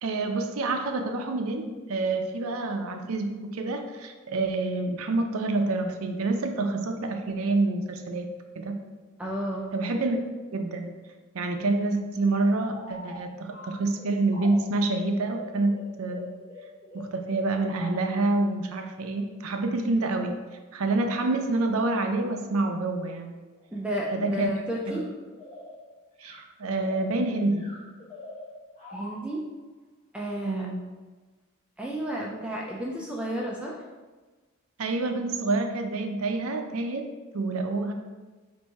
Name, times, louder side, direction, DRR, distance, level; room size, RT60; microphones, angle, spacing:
voice 1, 0.0-8.3 8.6-8.8 9.7-10.2 10.5-10.9 11.3-16.3 16.9-20.4 20.7-23.3 24.1-24.5 24.9-25.0 26.2-27.7 30.4-30.8 34.8-37.1 37.3-37.9, right 2 dB, 75° right, 5 dB, 0.5 m, -27 dB
voice 2, 9.2-10.0 23.7-25.0 28.9-29.4 30.1-30.7 31.8-33.8, equal, 5° right, -3 dB, 0.3 m, -32 dB
sound 1, 12.3-18.2 22.6-22.7 23.6-24.1 24.8-25.9 26.2-29.4 30.2-30.4, left 2 dB, 25° left, 0.8 m, -45 dB
4.1 x 2.6 x 4.5 m, 1.3 s
head